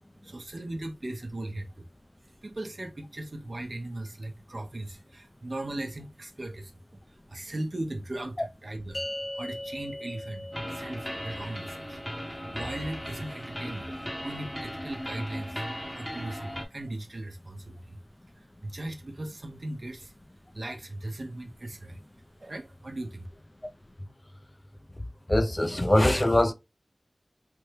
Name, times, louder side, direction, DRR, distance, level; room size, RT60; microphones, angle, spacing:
voice 1, 0.2-1.9 2.2-9.1 9.3-15.7 15.9-18.0 18.3-20.1 20.5-22.0 22.4-23.3, right 1 dB, 65° right, 0.7 m, -38 dB
sound 1, 8.9-15.5, left 1 dB, 50° left, 0.8 m, -42 dB
sound 2, 10.5-16.6, equal, 10° left, 0.7 m, -37 dB
voice 2, 25.3-26.5, left 1 dB, 30° left, 0.4 m, -22 dB
3.3 x 2.1 x 3.2 m
wide cardioid pair, 45°, 0 cm